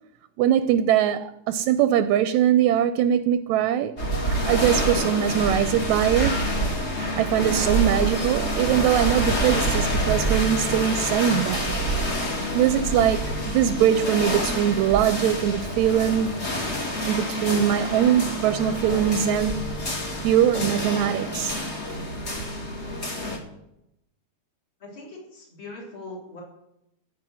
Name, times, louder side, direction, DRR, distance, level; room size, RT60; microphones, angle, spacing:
voice 1, 0.4-6.4 7.0-11.7 12.4-16.3 17.1-19.6 20.2-21.6, right 10 dB, 80° right, 1.9 m, -22 dB
sound 1, 4.0-23.4, equal, 25° left, 2.1 m, -27 dB
voice 2, 24.8-26.4, left 2 dB, 40° left, 4.4 m, -41 dB
14.0 x 5.7 x 9.3 m
omnidirectional pair, 3.5 m